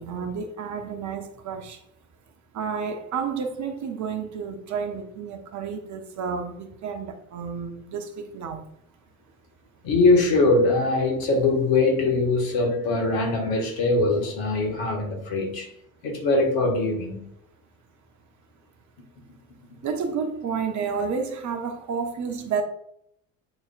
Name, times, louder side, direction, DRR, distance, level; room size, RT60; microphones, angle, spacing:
voice 1, 0.0-1.8 2.5-8.6 19.8-22.6, right 6 dB, 45° right, 1.2 m, -30 dB
voice 2, 9.8-15.7 16.0-17.3, left 3 dB, 60° left, 1.9 m, -22 dB
9.1 x 4.2 x 2.5 m
figure-of-eight pair, 60°, 41 cm